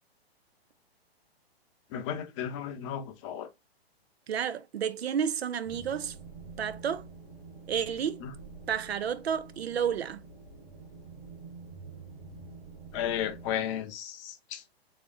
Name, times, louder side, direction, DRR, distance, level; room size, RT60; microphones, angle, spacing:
voice 1, 1.9-3.5 8.2-8.3 12.9-14.7, left 9 dB, 30° left, 0.6 m, -34 dB
voice 2, 4.3-6.2 6.6-7.1 7.7-8.2 8.7-10.2, right 8 dB, 75° right, 0.5 m, -31 dB
sound 1, 5.6-13.5, right 4 dB, 45° right, 1.7 m, -47 dB
4.1 x 3.0 x 2.3 m
figure-of-eight pair, 120°, 32 cm